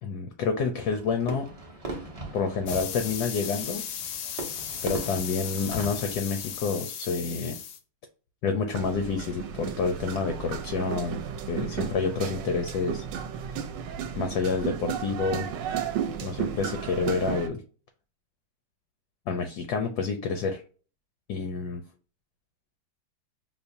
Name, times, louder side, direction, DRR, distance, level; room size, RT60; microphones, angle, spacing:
voice 1, 0.0-1.5 2.3-3.8 4.8-7.6 8.4-13.0 14.1-15.5 16.2-17.6 19.3-20.6 21.3-21.8, left 5 dB, 75° left, 6 dB, 0.9 m, -28 dB
Fireworks, 0.7-6.9, right 2 dB, 50° right, 0.4 m, -40 dB
sound 1, 2.7-7.8, left 8 dB, 90° left, 1.4 m, -36 dB
sound 2, 8.7-17.5, right 8 dB, 75° right, 1.2 m, -33 dB
5.4 x 2.1 x 2.5 m, 0.38 s
omnidirectional pair, 2.1 m